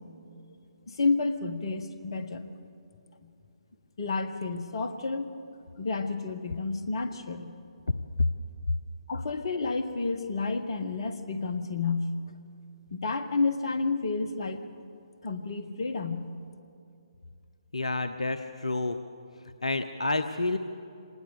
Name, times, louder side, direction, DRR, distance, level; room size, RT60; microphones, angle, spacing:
voice 1, 0.9-2.5 4.0-5.3 5.8-7.5 9.1-12.1 12.9-14.6 15.2-16.3, left 4 dB, 50° left, 8 dB, 1.5 m, -30 dB
voice 2, 17.7-19.0 19.6-20.6, left 2 dB, 75° left, 9 dB, 0.9 m, -29 dB
25.5 x 19.5 x 6.8 m, 2.5 s
figure-of-eight pair, 135°, 3 cm